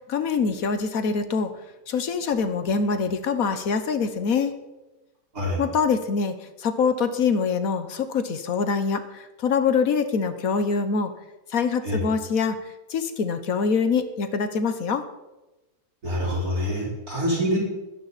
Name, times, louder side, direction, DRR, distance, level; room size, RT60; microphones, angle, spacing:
voice 1, 0.1-1.5 1.9-4.5 5.6-11.1 11.5-12.6 12.9-15.1, left 5 dB, 70° left, 10 dB, 1.5 m, -24 dB
voice 2, 16.0-17.6, equal, 85° right, -6 dB, 5.3 m, -25 dB
22.0 x 10.5 x 4.2 m, 1.1 s
omnidirectional pair, 1.5 m